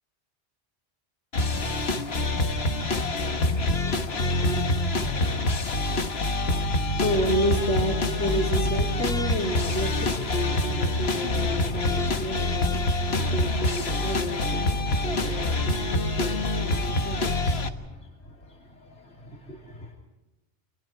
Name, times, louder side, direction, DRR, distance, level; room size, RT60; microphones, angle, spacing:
sound 1, 1.3-17.7, left 2 dB, 65° left, 1.6 m, -26 dB
voice 1, 3.0-18.0 18.5-19.9, equal, 90° left, 3.3 m, -32 dB
30.0 x 26.5 x 4.5 m
omnidirectional pair, 1.1 m